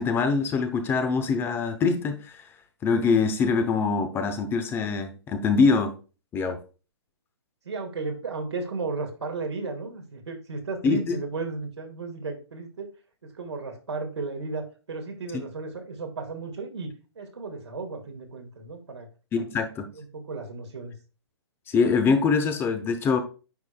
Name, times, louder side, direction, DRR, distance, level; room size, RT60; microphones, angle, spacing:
voice 1, 0.0-2.4 2.8-5.9 6.3-6.6 10.8-11.2 15.3-15.4 19.3-19.9 21.7-23.2, left 4 dB, 15° left, 0.8 m, -24 dB
voice 2, 7.7-12.9 13.2-16.9 17.2-19.1 19.4-19.6 19.9-20.9, right 3 dB, 80° right, 2.0 m, -34 dB
9.4 x 4.8 x 2.3 m
hypercardioid pair, 135°, 14 cm